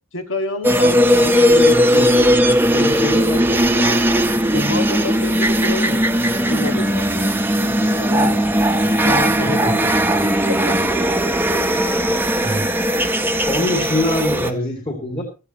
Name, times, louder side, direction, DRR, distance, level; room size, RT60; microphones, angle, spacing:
voice 1, 0.1-2.3 2.7-4.0 4.5-8.5 9.0-9.9 10.5-10.9 11.6-12.0, left 2 dB, 75° left, 1.9 m, -28 dB
sound 1, 0.6-14.5, equal, 10° right, 0.9 m, -17 dB
voice 2, 9.4-10.3 12.4-12.7 13.5-15.2, left 1 dB, 30° left, 2.4 m, -24 dB
15.5 x 13.5 x 3.0 m
head